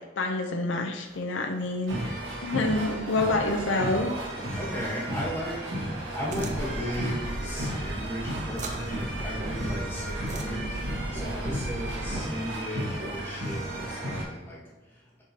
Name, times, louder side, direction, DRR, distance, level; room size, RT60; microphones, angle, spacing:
voice 1, 0.2-4.1 10.0-10.7, left 2 dB, 75° left, 4 dB, 0.6 m, -28 dB
sound 1, 1.0-2.2 2.4-11.5 11.7-14.0, right 2 dB, 55° right, 1.2 m, -47 dB
sound 2, 1.9-14.2, right 1 dB, 80° right, 1.8 m, -34 dB
voice 2, 4.6-15.2, equal, 10° left, -6 dB, 1.5 m, -36 dB
sound 3, 6.2-12.3, right 1 dB, 40° right, 0.6 m, -36 dB
9.8 x 3.7 x 2.8 m, 1.2 s
head